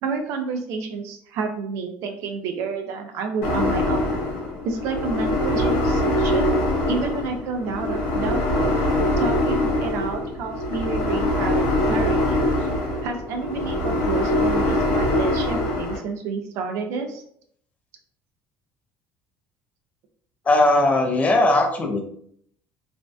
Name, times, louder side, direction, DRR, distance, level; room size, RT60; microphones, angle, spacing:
voice 1, 0.0-4.2 4.6-6.6 6.9-8.7 9.2-12.7 13.0-17.2, right 4 dB, 75° right, 5 dB, 0.4 m, -30 dB
sound 1, 3.4-16.0, left 1 dB, 85° left, 0.7 m, -23 dB
voice 2, 20.5-22.0, left 2 dB, 30° left, 3 dB, 0.5 m, -18 dB
2.5 x 2.1 x 2.3 m, 0.64 s
supercardioid pair, 95°, 5 cm